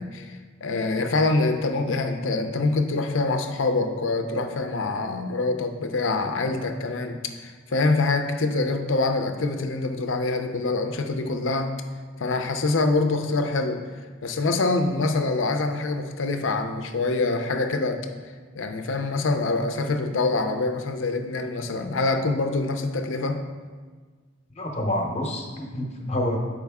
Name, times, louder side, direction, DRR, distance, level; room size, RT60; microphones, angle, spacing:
voice 1, 0.0-11.7 12.2-13.8 14.2-18.1 18.6-23.4, left 3 dB, 70° left, 6 dB, 0.6 m, -25 dB
voice 2, 24.5-26.4, left 1 dB, 30° left, 1 dB, 0.8 m, -28 dB
7.6 x 4.9 x 3.6 m, 1.5 s
head